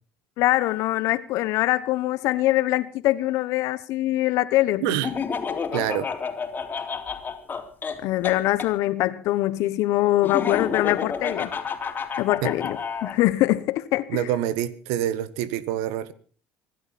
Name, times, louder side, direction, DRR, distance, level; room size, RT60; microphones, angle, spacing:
voice 1, 0.4-5.0 8.0-11.5 12.2-14.2, left 16 dB, 70° left, 1.1 m, -23 dB
voice 2, 4.8-5.1 5.7-6.1 12.4-12.5 14.1-16.1, right 11 dB, 80° right, 1.5 m, -26 dB
Laughter, 5.0-8.7 10.2-13.2, left 6 dB, 35° left, 3.6 m, -30 dB
25.5 x 11.5 x 4.3 m
supercardioid pair, 75°, 5 cm